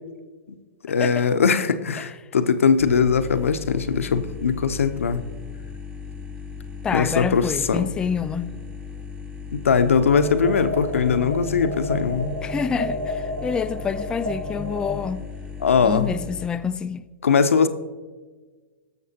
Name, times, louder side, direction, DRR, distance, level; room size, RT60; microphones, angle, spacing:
voice 1, 0.8-5.2 6.9-7.9 9.5-12.3 15.6-16.1 17.2-17.7, left 6 dB, 75° left, 0.7 m, -20 dB
sound 1, 2.8-16.5, left 5 dB, 10° right, 1.0 m, -37 dB
voice 2, 6.8-8.6 12.4-15.3 15.8-17.1, left 6 dB, 10° left, 0.3 m, -27 dB
sound 2, 10.1-15.1, equal, 90° right, 2.6 m, -31 dB
19.5 x 6.7 x 2.8 m
hypercardioid pair, 110°, 7 cm